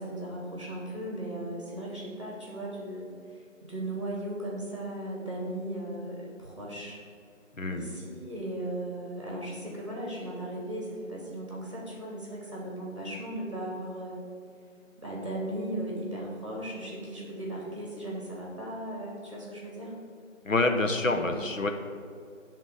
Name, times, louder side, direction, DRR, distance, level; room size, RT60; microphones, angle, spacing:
voice 1, 0.0-7.0 7.7-14.2 15.0-19.9 21.1-21.4, right 1 dB, 25° right, -4 dB, 1.4 m, -37 dB
voice 2, 7.5-7.9 20.4-21.7, left 2 dB, 75° left, 5 dB, 0.9 m, -27 dB
8.4 x 3.7 x 6.7 m, 2.4 s
figure-of-eight pair, 170°, 39 cm